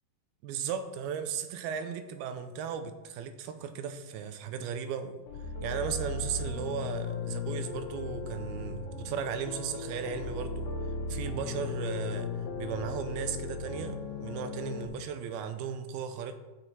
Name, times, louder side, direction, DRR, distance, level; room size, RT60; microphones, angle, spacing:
voice 1, 0.4-5.2 5.6-10.7 11.1-12.3 12.6-16.4, right 7 dB, 85° right, 9 dB, 2.6 m, -36 dB
sound 1, 5.3-14.9, left 3 dB, 80° left, 3.1 m, -36 dB
14.0 x 5.6 x 4.4 m, 1.1 s
omnidirectional pair, 4.5 m